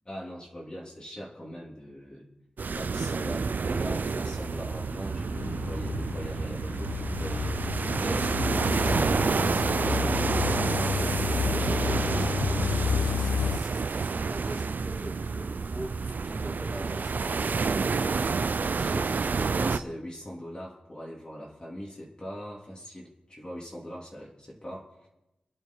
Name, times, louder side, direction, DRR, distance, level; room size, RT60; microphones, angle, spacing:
voice 1, 0.1-2.3 2.7-10.4 13.4-13.5 18.5-25.1, equal, 25° left, -4 dB, 3.5 m, -41 dB
sound 1, 2.6-19.8, right 4 dB, 65° right, 0.6 m, -29 dB
sound 2, 4.3-13.6, left 7 dB, 80° left, 0.6 m, -31 dB
voice 2, 11.5-12.7 13.0-18.0, right 1 dB, 5° right, -4 dB, 4.2 m, -41 dB
28.0 x 10.5 x 4.7 m, 0.95 s
wide cardioid pair, 90°, 3 cm